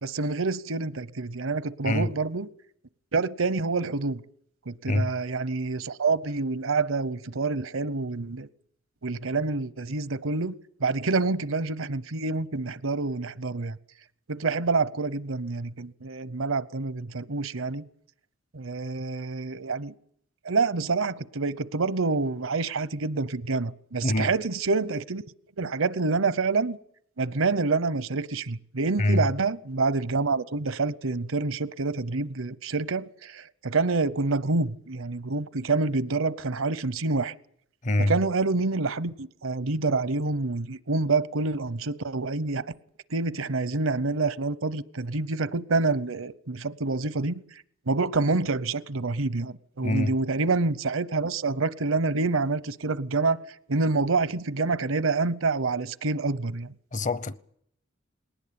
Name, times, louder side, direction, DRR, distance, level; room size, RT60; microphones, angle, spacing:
voice 1, 0.0-2.5 3.1-4.2 4.7-8.5 9.0-10.5 10.8-13.8 14.3-17.9 18.5-19.9 20.4-25.2 25.6-26.8 27.2-37.3 38.0-42.6 43.1-47.4 47.9-53.4 53.7-56.7, right 3 dB, 75° right, 0.9 m, -27 dB
voice 2, 37.8-38.1 49.8-50.1 56.9-57.4, left 1 dB, 40° left, 0.8 m, -24 dB
20.5 x 18.5 x 8.8 m
head